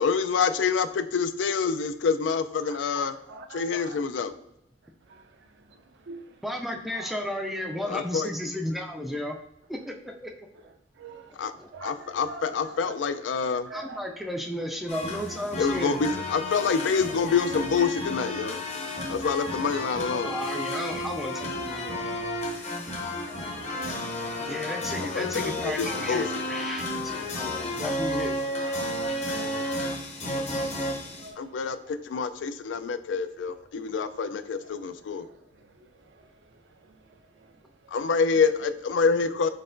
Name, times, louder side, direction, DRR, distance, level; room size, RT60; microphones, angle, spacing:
voice 1, 0.0-3.2 3.5-4.3 7.9-8.3 11.4-11.5 11.8-13.7 15.6-18.6 19.1-20.3 25.0-26.2 31.4-35.3 37.9-39.5, left 5 dB, 90° left, 11 dB, 0.4 m, -27 dB
voice 2, 2.6-4.0 5.1-6.4 6.9-7.3 10.6-12.9 13.4-14.2 16.9-17.1 18.3-18.4 18.9-19.3 20.1-20.3 21.8-22.2 22.4-24.5 28.8-29.8 30.4-32.0 32.8-33.0 33.7-34.1 34.5-38.0, right 3 dB, 70° right, 8 dB, 0.4 m, -48 dB
voice 3, 6.4-9.4 9.7-10.5 11.5-11.7 12.8-12.9 13.7-16.0 20.2-22.3 24.5-28.4, left 1 dB, ahead, 2 dB, 0.3 m, -34 dB
sound 1, 14.9-31.3, left 1 dB, 40° left, 0.7 m, -32 dB
4.5 x 3.9 x 2.6 m, 0.80 s
head